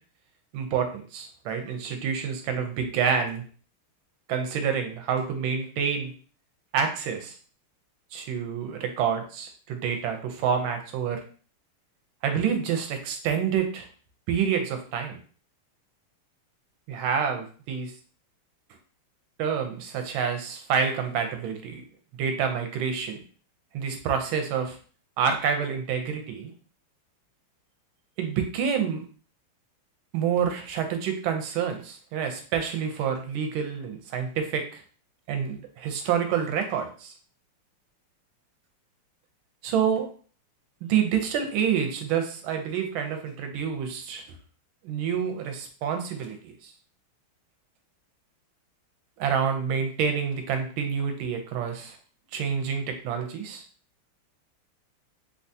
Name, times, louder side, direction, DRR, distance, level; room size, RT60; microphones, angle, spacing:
voice 1, 0.5-3.4 4.3-6.1 6.7-7.4 8.1-11.2 12.2-13.9 14.3-15.2 16.9-17.9 19.4-21.8 22.2-23.2 23.7-24.8 25.2-26.5 28.2-29.0 30.1-34.8 35.3-37.1 39.6-40.1 40.9-44.2 44.8-46.7 49.2-52.0 52.3-53.6, right 7 dB, 75° right, 5 dB, 1.4 m, -28 dB
3.6 x 2.3 x 2.6 m, 0.41 s
omnidirectional pair, 2.4 m